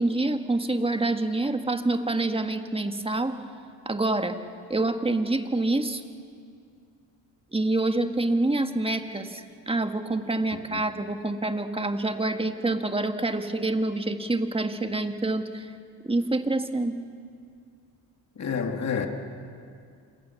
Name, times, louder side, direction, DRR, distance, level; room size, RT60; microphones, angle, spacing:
voice 1, 0.0-3.4 3.8-4.4 4.7-6.0 7.5-15.7 16.0-17.0, right 2 dB, 15° right, 7 dB, 1.7 m, -27 dB
voice 2, 10.5-10.8 18.4-19.1, left 6 dB, 40° left, 4 dB, 2.2 m, -29 dB
27.0 x 19.0 x 7.1 m, 2.3 s
supercardioid pair, 80°, 41 cm